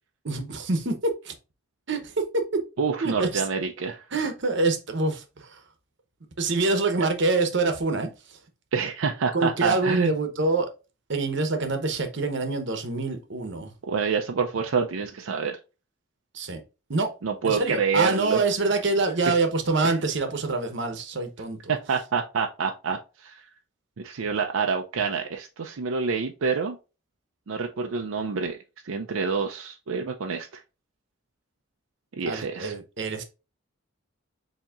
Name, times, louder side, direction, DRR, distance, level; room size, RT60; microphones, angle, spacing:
voice 1, 0.2-1.3 1.9-2.1 3.0-3.4 4.1-5.6 6.4-8.4 9.3-10.7 11.1-13.7 16.3-16.6 16.9-17.1 17.4-21.7 32.3-33.2, right 3 dB, 60° right, 0.9 m, -26 dB
voice 2, 2.8-4.0 7.0-7.1 8.7-10.1 13.9-15.6 17.2-18.4 19.3-19.4 19.8-19.9 21.7-23.3 24.0-26.8 27.5-28.6 28.8-30.5 32.2-32.7, right 5 dB, 80° right, 0.5 m, -27 dB
7.1 x 2.9 x 2.4 m
head